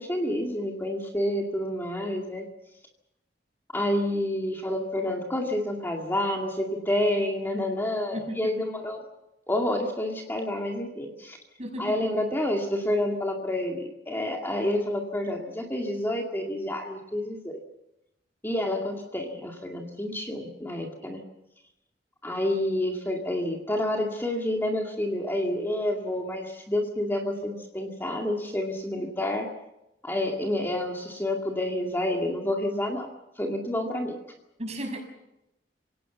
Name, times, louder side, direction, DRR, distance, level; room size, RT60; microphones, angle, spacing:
voice 1, 0.0-2.5 3.7-9.0 9.5-11.4 11.8-17.6 18.4-21.2 22.2-29.5 30.0-33.1 33.4-34.2, left 1 dB, 15° left, 1 dB, 2.2 m, -29 dB
voice 2, 11.6-11.9 34.6-35.0, right 1 dB, 40° right, 3 dB, 6.3 m, -34 dB
27.0 x 17.5 x 7.2 m, 0.90 s
head